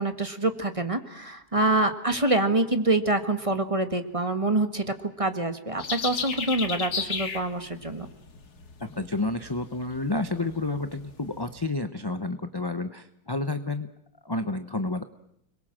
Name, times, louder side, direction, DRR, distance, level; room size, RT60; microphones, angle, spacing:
voice 1, 0.0-8.1, right 2 dB, 20° right, 8 dB, 1.7 m, -26 dB
sound 1, 5.8-11.7, left 5 dB, 80° left, 2.4 m, -35 dB
voice 2, 8.8-13.9 14.2-15.0, left 2 dB, 20° left, 9 dB, 0.8 m, -30 dB
30.0 x 22.0 x 7.6 m, 0.73 s
omnidirectional pair, 1.7 m